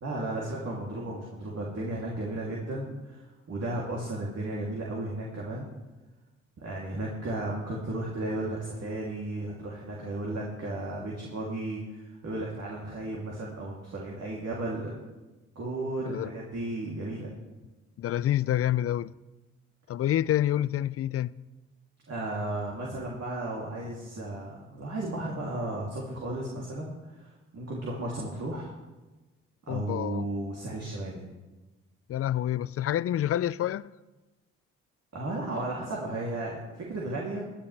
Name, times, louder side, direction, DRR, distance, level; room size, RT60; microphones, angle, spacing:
voice 1, 0.0-5.7 6.6-14.9 15.5-17.3 22.1-28.7 29.7-31.2 35.1-37.5, right 1 dB, 50° right, 3.0 m, -34 dB
voice 2, 18.0-19.1 19.9-21.3 29.7-30.2 32.1-33.9, left 12 dB, 45° left, 0.4 m, -28 dB
18.5 x 10.5 x 3.4 m
hypercardioid pair, 50°, 32 cm